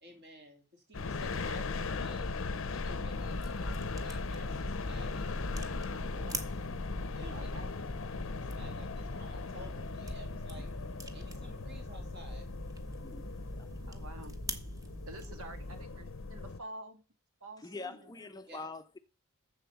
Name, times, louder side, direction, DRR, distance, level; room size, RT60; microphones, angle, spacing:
voice 1, 0.0-2.3 2.7-6.5 7.1-7.5 8.4-10.7 11.1-12.5 18.5-18.7, equal, 45° right, 3.0 m, -52 dB
sound 1, 0.9-16.6, left 3 dB, 60° left, 0.6 m, -38 dB
sound 2, 3.1-15.8, right 1 dB, 15° right, 0.9 m, -44 dB
voice 2, 7.3-7.9 13.8-14.4 15.1-17.0 17.4-18.5, right 2 dB, 75° right, 1.7 m, -49 dB
voice 3, 13.0-13.7 17.6-19.0, left 3 dB, 15° left, 0.5 m, -45 dB
7.4 x 7.1 x 7.0 m
head